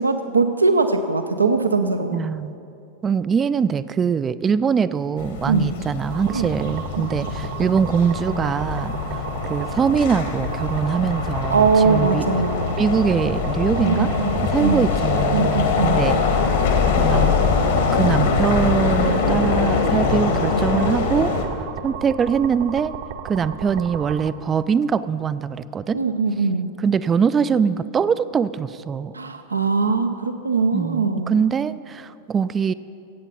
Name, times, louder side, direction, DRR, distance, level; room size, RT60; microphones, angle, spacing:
voice 1, 0.0-2.2 5.5-5.7 6.3-6.7 11.5-12.7 13.8-14.3 14.6-14.9 15.3-16.0 25.9-26.7 29.1-31.4, right 4 dB, 80° right, 8 dB, 0.5 m, -21 dB
voice 2, 2.1-2.5 3.0-9.2 9.5-12.4 12.8-14.1 14.5-16.2 17.0-17.4 17.9-21.3 21.8-22.9 23.2-26.0 26.8-29.2 30.7-32.7, right 6 dB, 20° right, 15 dB, 0.3 m, -22 dB
sound 1, 5.2-21.4, left 5 dB, 60° left, 1.5 m, -23 dB
sound 2, 6.1-24.3, right 8 dB, 50° right, 0.8 m, -34 dB
16.0 x 8.1 x 5.6 m, 2.7 s
figure-of-eight pair, 90°, 0 cm